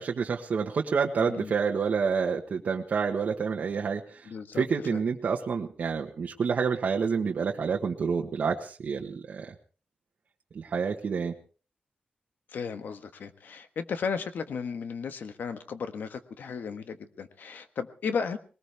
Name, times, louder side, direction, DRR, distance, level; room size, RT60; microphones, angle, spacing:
voice 1, 0.0-9.5 10.5-11.3, right 5 dB, 55° right, 1 dB, 1.3 m, -28 dB
voice 2, 4.3-4.6 4.9-5.0 12.5-18.4, left 6 dB, 75° left, 9 dB, 1.5 m, -34 dB
21.0 x 19.5 x 3.5 m, 0.40 s
wide cardioid pair, 165°, 3 cm